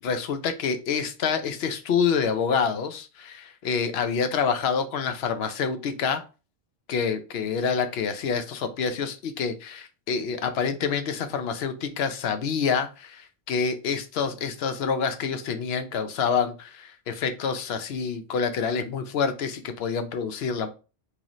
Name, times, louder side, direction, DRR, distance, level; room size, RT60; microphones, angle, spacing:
voice 1, 0.0-6.2 6.9-20.7, left 6 dB, 70° left, 9 dB, 0.8 m, -27 dB
3.9 x 3.0 x 2.9 m, 0.33 s
omnidirectional pair, 1.1 m